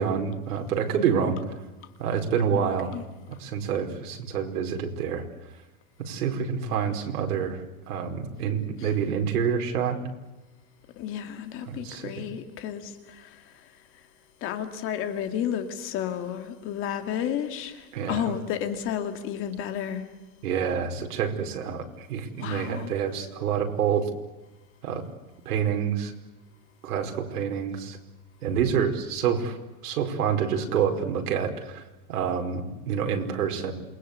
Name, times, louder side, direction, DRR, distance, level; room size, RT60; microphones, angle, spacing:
voice 1, 0.0-1.4 2.0-3.0 3.4-5.2 6.0-10.0 11.7-12.2 17.9-18.2 20.4-24.1 24.8-25.0 25.4-26.1 26.8-28.0 28.4-29.6 29.8-31.8 32.1-33.7, right 7 dB, 85° right, 4.9 m, -27 dB
voice 2, 11.0-13.7 14.4-20.1 22.4-22.9, left 9 dB, 30° left, 2.4 m, -32 dB
28.0 x 21.5 x 8.3 m
supercardioid pair, 170°, 45 cm